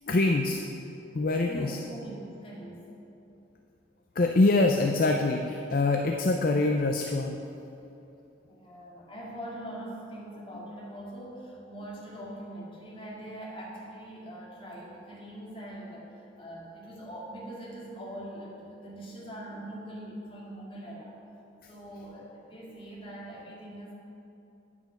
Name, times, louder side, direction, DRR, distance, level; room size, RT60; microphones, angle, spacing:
voice 1, 0.0-0.6 1.1-1.8 4.2-8.0, left 2 dB, 45° left, 3 dB, 0.5 m, -25 dB
voice 2, 1.4-2.8 8.5-21.2 21.7-23.9, right 1 dB, 30° left, -5 dB, 2.2 m, -42 dB
9.2 x 8.6 x 5.8 m, 2.8 s
head